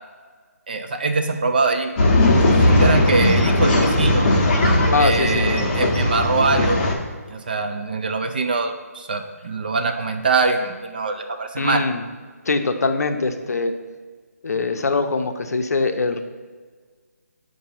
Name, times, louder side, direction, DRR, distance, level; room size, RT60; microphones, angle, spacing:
voice 1, 0.7-1.9 2.4-4.3 5.0-6.8 7.3-11.8, right 3 dB, 35° right, 6 dB, 0.3 m, -23 dB
Male speech man speaking / Chatter / Rattle, 2.0-6.9, left 1 dB, 30° left, 0.7 m, -18 dB
voice 2, 4.9-5.5 11.6-12.0 12.5-13.7 14.4-16.2, left 3 dB, 70° left, 6 dB, 0.6 m, -22 dB
6.5 x 2.6 x 5.5 m, 1.5 s
hypercardioid pair, 165°, 9 cm